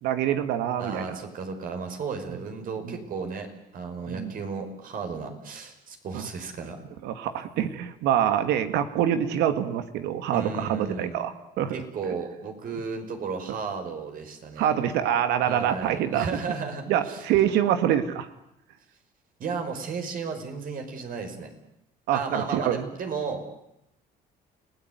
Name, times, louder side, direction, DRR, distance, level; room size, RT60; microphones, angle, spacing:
voice 1, 0.0-1.2 2.8-3.0 4.1-4.3 6.1-6.3 7.0-11.3 11.6-11.8 14.6-16.3 16.9-18.3 22.1-22.8, right 10 dB, 90° right, 10 dB, 2.0 m, -25 dB
voice 2, 0.8-6.8 10.3-11.2 11.7-14.7 15.4-17.2 19.4-21.5 22.1-23.5, right 5 dB, 55° right, 5 dB, 5.7 m, -34 dB
29.5 x 18.0 x 9.6 m, 0.83 s
cardioid pair, 110°, 17 cm